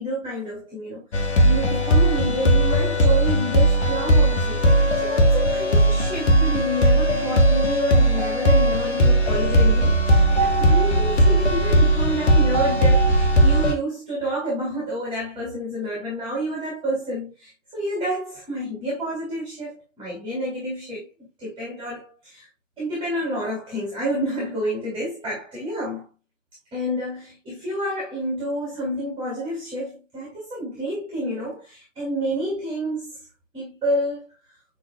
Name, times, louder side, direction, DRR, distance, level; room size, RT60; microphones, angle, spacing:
voice 1, 0.0-22.5 22.8-26.1 26.7-33.2 33.5-34.3, equal, 15° right, 3.5 m, -29 dB
sound 1, 1.1-13.7, right 1 dB, 60° left, 1.8 m, -18 dB
10.5 x 4.0 x 2.4 m
figure-of-eight pair, 120°, 38 cm